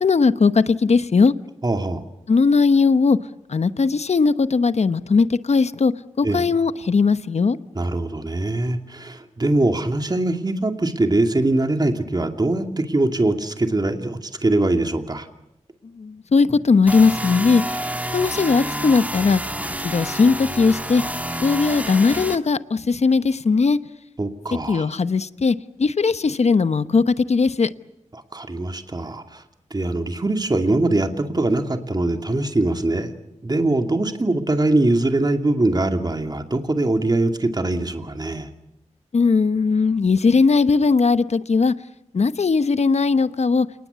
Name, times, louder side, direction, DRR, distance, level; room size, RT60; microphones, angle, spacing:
voice 1, 0.0-1.3 2.3-3.2 3.5-5.9 6.2-7.6 16.0-17.6 18.1-19.4 19.8-21.0 21.4-23.8 24.7-27.7 39.1-41.7 42.1-43.7, left 4 dB, 65° left, 13 dB, 1.0 m, -18 dB
voice 2, 1.6-2.0 6.2-6.4 7.7-15.3 24.2-24.9 28.1-29.4 29.7-33.1 33.4-38.5, right 2 dB, 35° right, 6 dB, 2.5 m, -22 dB
sound 1, 16.9-22.4, right 1 dB, 10° right, 2.6 m, -29 dB
28.5 x 20.0 x 8.2 m, 0.86 s
wide cardioid pair, 65°, 12 cm